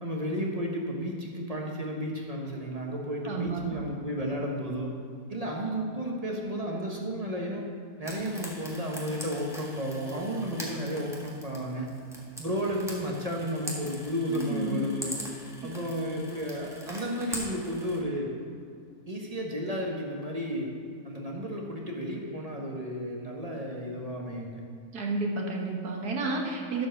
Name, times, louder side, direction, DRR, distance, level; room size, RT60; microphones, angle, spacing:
voice 1, 0.0-4.9 5.3-7.7 8.0-11.9 12.4-15.2 15.6-18.3 19.1-20.7 21.0-24.6, equal, 30° right, -1 dB, 1.0 m, -33 dB
voice 2, 3.2-3.8 14.3-14.8 15.6-15.7 24.9-26.9, right 3 dB, 85° right, 0 dB, 1.8 m, -31 dB
Frying (food), 8.0-18.0, equal, ahead, 1.3 m, -42 dB
11.5 x 4.7 x 6.5 m, 2.4 s
omnidirectional pair, 1.6 m